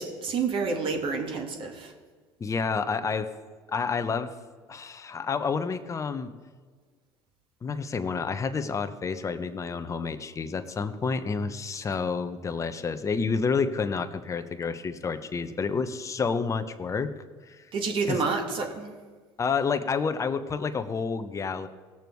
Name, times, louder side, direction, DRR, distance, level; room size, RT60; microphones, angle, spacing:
voice 1, 0.0-1.9 17.7-18.9, right 4 dB, 50° right, 3 dB, 2.2 m, -29 dB
voice 2, 2.4-3.3 3.7-4.3 4.7-6.3 7.6-17.1 17.5-17.6 18.1-18.2 19.4-21.7, left 5 dB, 30° left, 8 dB, 1.0 m, -29 dB
18.0 x 7.1 x 4.7 m, 1.5 s
supercardioid pair, 85°, 11 cm